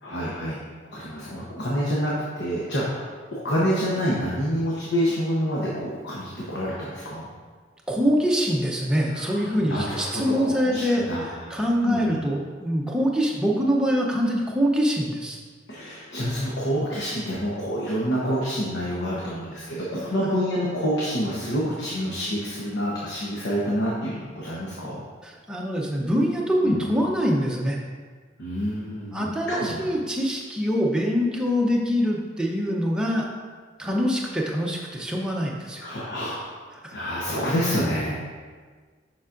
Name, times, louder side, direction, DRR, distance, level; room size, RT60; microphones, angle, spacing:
voice 1, 0.0-0.6 0.9-2.1 2.4-7.3 9.1-11.6 11.9-12.2 15.7-25.0 26.6-26.8 28.4-29.8 35.8-36.6 36.9-38.2, equal, 65° left, -6 dB, 1.0 m, -27 dB
voice 2, 7.9-15.4 25.2-27.8 29.1-33.3 33.8-35.8 36.8-36.9, equal, 5° right, -2 dB, 0.7 m, -24 dB
7.0 x 5.9 x 2.6 m, 1.5 s
head